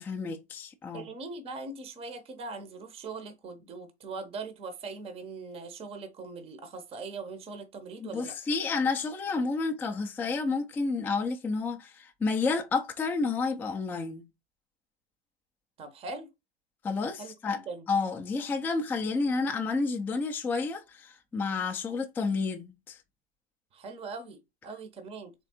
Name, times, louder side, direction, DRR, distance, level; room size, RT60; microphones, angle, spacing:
voice 1, 0.0-1.1 8.0-14.2 16.8-17.6 17.9-23.0, left 4 dB, 5° left, 0.4 m, -30 dB
voice 2, 0.9-8.4 15.8-16.3 17.2-17.3 17.7-17.8 23.7-25.3, right 3 dB, 15° right, 0.7 m, -41 dB
3.7 x 3.2 x 4.2 m
hypercardioid pair, 115°, 34 cm